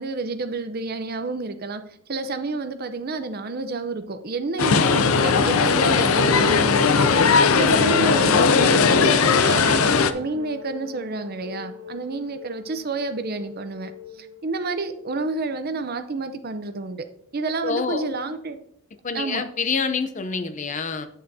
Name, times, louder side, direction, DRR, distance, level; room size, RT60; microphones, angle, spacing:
voice 1, 0.0-1.8 2.1-7.2 7.5-13.9 14.2-17.0 17.3-18.6 19.1-19.4, right 3 dB, 45° right, 0.6 m, -30 dB
sound 1, 4.6-10.1, left 5 dB, 85° left, 0.5 m, -18 dB
sound 2, 7.5-15.2, left 3 dB, 85° right, 1.2 m, -38 dB
voice 2, 17.6-18.1 19.0-21.1, left 5 dB, 35° left, 0.5 m, -26 dB
8.6 x 7.8 x 2.7 m
head